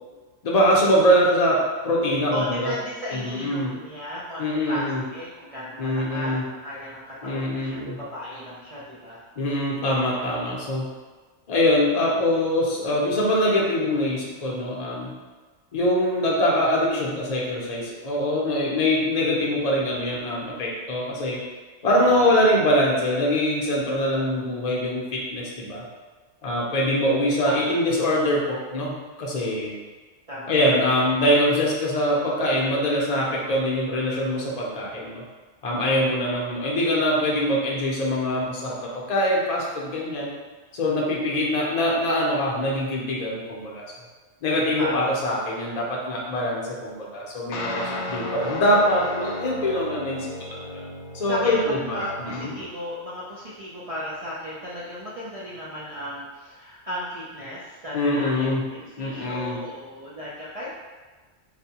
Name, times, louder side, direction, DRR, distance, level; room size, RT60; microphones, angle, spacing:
voice 1, 0.4-2.7 3.1-3.7 4.4-5.0 5.8-6.4 7.2-8.0 9.4-10.9 11.5-15.1 15.7-21.4 21.8-25.8 26.4-29.7 30.5-35.2 35.6-40.3 40.7-43.8 44.4-50.7 51.1-52.5 57.9-58.6 59.0-59.6, left 1 dB, 40° left, -3 dB, 0.6 m, -23 dB
voice 2, 2.3-9.2 22.0-22.3 27.4-28.2 30.3-30.5 35.8-36.1 44.8-45.0 47.9-48.3 49.7-50.0 51.3-58.5 58.9-60.7, left 1 dB, 50° right, -8 dB, 0.4 m, -35 dB
sound 1, 47.5-52.7, left 2 dB, 75° left, 0.8 m, -34 dB
4.0 x 2.2 x 2.8 m, 1.3 s
omnidirectional pair, 1.2 m